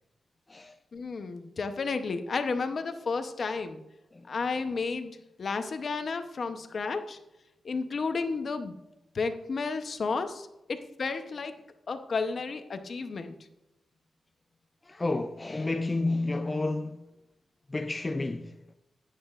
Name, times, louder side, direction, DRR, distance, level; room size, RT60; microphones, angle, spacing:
voice 1, 0.9-3.8 4.3-5.1 5.4-7.2 7.6-8.8 9.1-11.5 11.9-13.3, left 4 dB, 50° left, 0.8 m, -32 dB
voice 2, 14.8-17.1 17.7-18.6, left 2 dB, 20° left, 0.4 m, -31 dB
11.0 x 9.3 x 2.5 m
wide cardioid pair, 135°, 0 cm